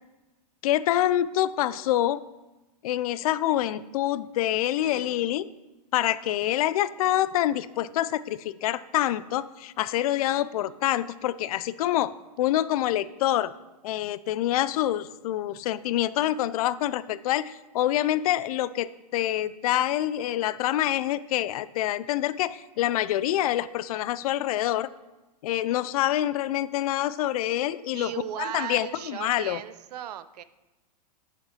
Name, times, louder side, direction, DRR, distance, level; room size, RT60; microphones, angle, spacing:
voice 1, 0.6-2.2 2.8-5.5 5.9-13.5 13.8-24.9 25.4-28.1 28.4-29.6, left 13 dB, 60° left, 17 dB, 0.6 m, -26 dB
voice 2, 4.8-5.2 10.3-10.4 27.9-30.4, right 11 dB, 70° right, 14 dB, 0.7 m, -37 dB
9.2 x 7.6 x 5.6 m, 1.1 s
hypercardioid pair, 125°, 21 cm